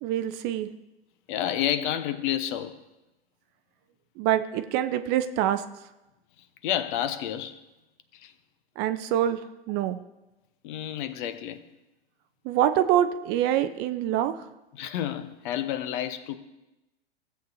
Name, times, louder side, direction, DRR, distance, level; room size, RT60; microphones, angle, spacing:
voice 1, 0.0-0.7 4.2-5.6 8.8-9.4 9.7-10.0 12.4-14.5, right 11 dB, 35° right, 0.5 m, -25 dB
voice 2, 1.3-2.7 6.6-7.6 8.1-8.3 10.6-11.6 14.7-16.4, left 11 dB, 50° left, 0.9 m, -30 dB
16.0 x 8.0 x 2.7 m
hypercardioid pair, 105°, 32 cm